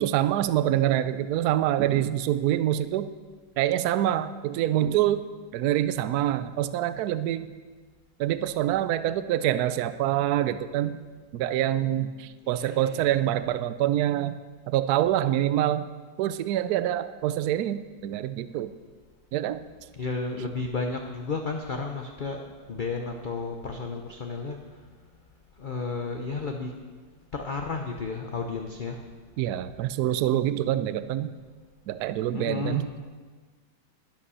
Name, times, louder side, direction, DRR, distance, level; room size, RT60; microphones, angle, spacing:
voice 1, 0.0-3.1 3.6-5.2 5.5-7.5 8.2-11.0 11.3-14.4 14.7-15.9 16.2-18.7 19.3-19.6 29.4-31.3 31.9-33.0, right 12 dB, 70° right, 13 dB, 1.0 m, -26 dB
voice 2, 12.5-13.1 20.0-22.4 22.7-24.6 25.6-26.7 27.3-29.0 32.3-32.8, left 4 dB, 45° left, 3 dB, 0.6 m, -32 dB
12.0 x 11.5 x 5.6 m, 1.5 s
omnidirectional pair, 1.9 m